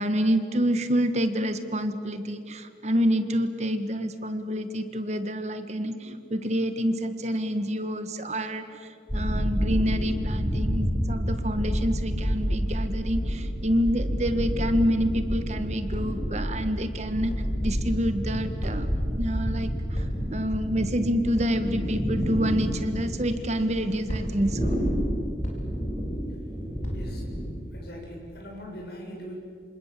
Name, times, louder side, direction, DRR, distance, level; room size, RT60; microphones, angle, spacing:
voice 1, 0.0-8.8 9.1-17.3 17.6-20.0 20.3-24.8, equal, 40° right, 9 dB, 1.5 m, -27 dB
sound 1, 9.1-27.5, equal, 10° left, 5.5 m, -29 dB
sound 2, 15.9-16.3 17.3-17.6 18.6-19.0 19.9-20.3 21.3-21.6 22.7-22.9 24.1-24.5 25.4-25.8 26.8-27.0, equal, 40° left, 4.8 m, -34 dB
voice 2, 26.8-27.4 27.7-29.3, equal, 65° left, -1 dB, 7.5 m, -41 dB
27.5 x 26.0 x 7.6 m, 2.4 s
head